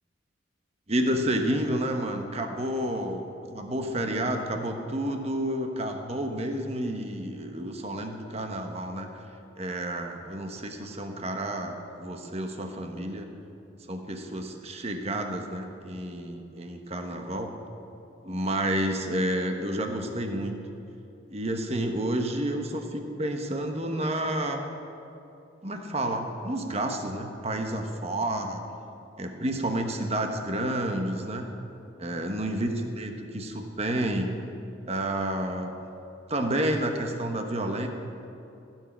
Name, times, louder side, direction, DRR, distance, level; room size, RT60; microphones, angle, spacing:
voice 1, 0.9-3.2 3.5-9.1 9.6-13.3 13.9-17.5 18.2-20.6 21.3-24.6 25.6-28.6 29.2-31.5 32.0-34.3 34.9-35.7 36.3-37.9, right 1 dB, 35° right, 4 dB, 1.2 m, -30 dB
16.0 x 7.5 x 9.9 m, 2.8 s
head